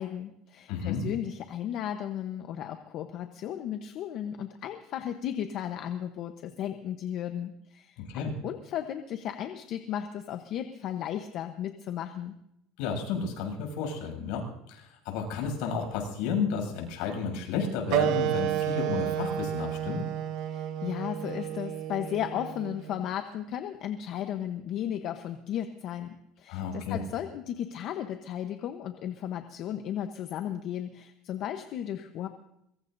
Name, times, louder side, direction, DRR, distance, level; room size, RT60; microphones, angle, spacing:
voice 1, 0.0-12.3 20.5-32.3, left 10 dB, 50° left, 7 dB, 1.0 m, -35 dB
voice 2, 0.7-1.0 8.0-8.3 12.8-14.4 14.7-20.1 26.5-27.0, left 5 dB, 75° left, 2 dB, 7.5 m, -32 dB
Wind instrument woodwind instrument, 17.9-23.0, right 10 dB, 65° right, 1.3 m, -31 dB
23.5 x 22.5 x 2.7 m, 0.79 s
cardioid pair, 140°, 0 cm